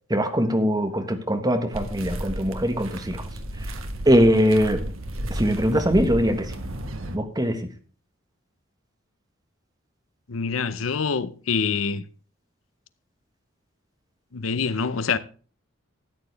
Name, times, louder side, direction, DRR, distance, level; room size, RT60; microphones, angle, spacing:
voice 1, 0.1-3.2 4.0-4.8 5.3-6.5 7.1-7.7, equal, 20° right, 1.4 m, -21 dB
sound 1, 1.7-7.2, right 1 dB, 80° right, 1.5 m, -33 dB
voice 2, 10.3-12.0 14.3-15.2, left 5 dB, 80° left, 0.7 m, -25 dB
13.5 x 9.1 x 3.4 m
head